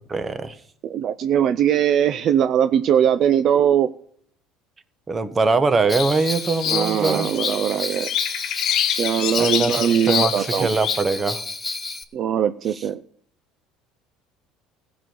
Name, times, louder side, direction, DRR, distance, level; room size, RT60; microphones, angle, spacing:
voice 1, 0.1-0.5 5.1-7.3 8.7-8.8 9.4-11.4, right 3 dB, 25° right, 11 dB, 1.3 m, -22 dB
voice 2, 0.8-3.9 6.7-8.1 8.9-10.7 12.1-13.0, right 9 dB, 55° right, 12 dB, 0.5 m, -20 dB
Bell, 5.9-12.0, left 3 dB, 15° left, 2.0 m, -31 dB
sound 1, 6.0-11.0, left 11 dB, 60° left, 1.1 m, -27 dB
15.0 x 6.2 x 9.5 m, 0.64 s
supercardioid pair, 85°, 0 cm